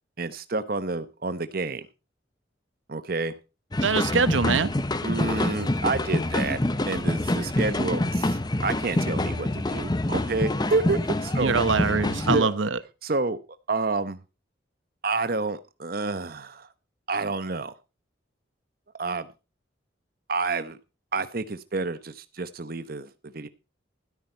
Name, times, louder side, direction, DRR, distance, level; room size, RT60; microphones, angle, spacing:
voice 1, 0.2-1.9 2.9-3.3 5.0-6.6 6.9-11.5 12.2-12.5 13.0-13.4 13.7-14.2 15.0-16.7 17.1-17.7 19.0-19.3 20.3-20.8 21.1-23.5, right 3 dB, 50° right, 0.9 m, -29 dB
sound 1, 3.7-12.4, left 1 dB, 20° left, 0.8 m, -26 dB
voice 2, 3.8-4.7 11.4-12.8, right 4 dB, 85° right, 0.8 m, -23 dB
13.0 x 11.0 x 4.4 m
head